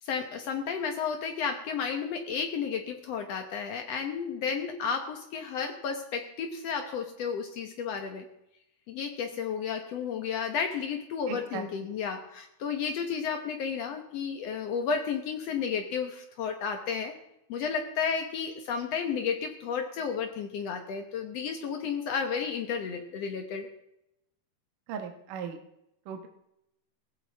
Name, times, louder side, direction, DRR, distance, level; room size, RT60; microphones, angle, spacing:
voice 1, 0.0-8.2 8.9-17.1 17.5-23.7, left 6 dB, 80° left, 4 dB, 1.4 m, -32 dB
voice 2, 11.3-11.7 24.9-25.6 26.1-26.3, right 7 dB, 65° right, 4 dB, 2.6 m, -37 dB
21.0 x 16.5 x 3.5 m, 0.82 s
omnidirectional pair, 4.6 m